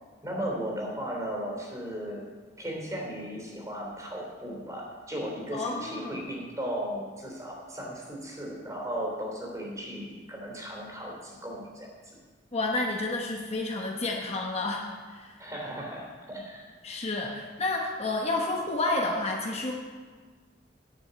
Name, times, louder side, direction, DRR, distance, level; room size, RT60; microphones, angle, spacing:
voice 1, 0.2-2.3 2.6-12.1 15.4-16.7, equal, 15° right, -2 dB, 3.2 m, -36 dB
voice 2, 5.5-6.2 12.5-15.3 16.8-19.7, left 2 dB, 35° left, 0 dB, 1.0 m, -30 dB
10.5 x 7.0 x 7.9 m, 1.5 s
head